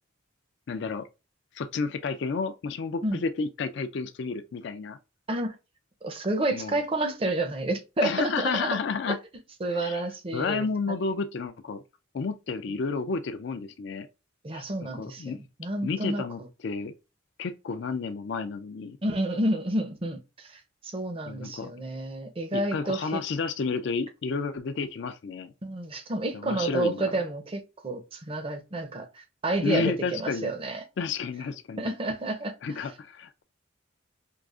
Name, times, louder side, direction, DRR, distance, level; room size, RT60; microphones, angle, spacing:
voice 1, 0.7-1.1 1.5-5.0 6.5-6.8 8.0-9.2 9.7-10.0 10.3-11.8 12.1-14.1 14.5-15.4 15.8-16.9 17.4-19.0 21.3-21.7 22.5-25.5 26.3-27.1 29.6-30.5 31.0-31.9 32.6-33.4, left 4 dB, 60° left, 0.4 m, -31 dB
voice 2, 6.0-8.8 9.1-9.2 9.6-11.0 14.4-16.2 19.0-20.5 20.8-23.2 25.6-30.8 31.8-32.9, right 2 dB, 30° right, 0.5 m, -30 dB
4.7 x 2.4 x 2.4 m
head